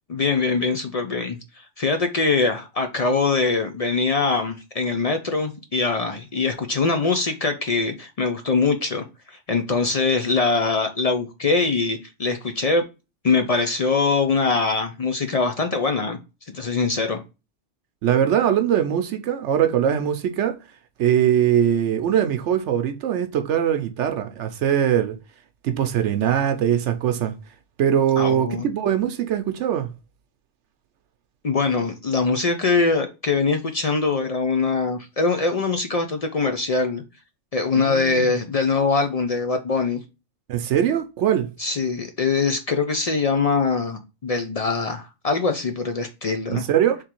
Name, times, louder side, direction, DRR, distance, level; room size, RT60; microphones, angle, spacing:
voice 1, 0.1-12.8 13.2-16.2 16.5-17.2 28.2-28.7 31.4-37.0 37.5-40.0 41.6-46.7, left 4 dB, 50° left, 0.4 m, -23 dB
voice 2, 18.0-20.6 21.0-25.2 25.6-27.4 27.8-29.9 37.7-38.3 40.5-41.5 46.5-47.0, right 9 dB, 75° right, 0.9 m, -21 dB
3.7 x 3.1 x 4.3 m
omnidirectional pair, 1.3 m